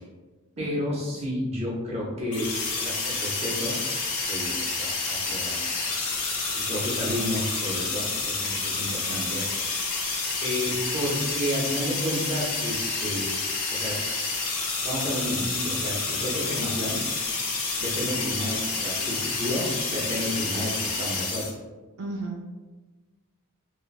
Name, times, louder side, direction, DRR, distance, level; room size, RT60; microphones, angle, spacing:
voice 1, 0.6-2.5 2.8-3.8 4.3-6.0 6.5-9.5 10.4-13.3 13.7-14.0 14.8-17.0 17.8-21.5, equal, 30° right, -4 dB, 0.6 m, -31 dB
sound 1, 2.3-21.5, left 3 dB, 75° left, 0.7 m, -29 dB
voice 2, 8.9-9.4 22.0-22.5, right 3 dB, 80° right, 0 dB, 0.4 m, -36 dB
3.2 x 2.2 x 2.3 m, 1.2 s
head